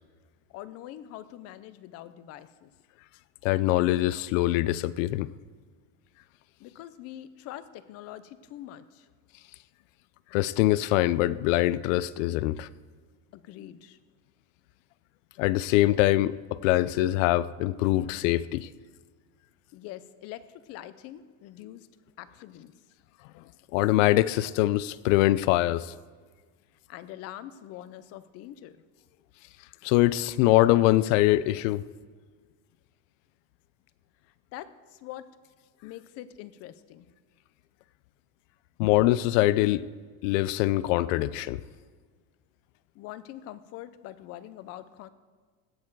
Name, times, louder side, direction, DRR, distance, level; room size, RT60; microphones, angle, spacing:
voice 1, 0.5-2.7 6.6-9.1 13.3-14.0 19.7-21.9 22.2-22.8 26.9-28.8 34.2-35.4 35.8-37.1 42.9-45.1, left 13 dB, 40° left, 0.5 m, -44 dB
voice 2, 3.4-5.3 10.3-12.7 15.4-18.7 23.7-25.9 29.8-31.8 38.8-39.9 40.2-41.6, left 16 dB, 85° left, 0.5 m, -23 dB
16.0 x 7.0 x 4.6 m
cardioid pair, 155°, 37 cm